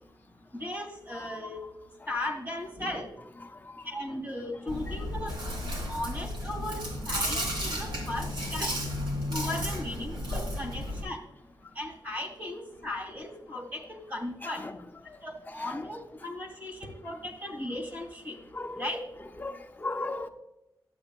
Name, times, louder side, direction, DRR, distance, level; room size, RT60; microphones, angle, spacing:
voice 1, 0.5-1.6 2.1-3.1 3.9-5.3 5.9-8.8 9.3-11.3 11.8-14.6 15.2-18.4 18.8-19.0, left 1 dB, 25° right, 2.1 m, -37 dB
voice 2, 3.5-3.9 14.4-14.7 15.1-15.2 15.6-15.9 18.5-18.8 19.4-20.3, left 2 dB, 25° left, 0.7 m, -37 dB
Chewing mastication, 4.7-11.0, equal, 85° right, 2.8 m, -33 dB
12.0 x 8.4 x 2.2 m
wide cardioid pair, 155°, 8 cm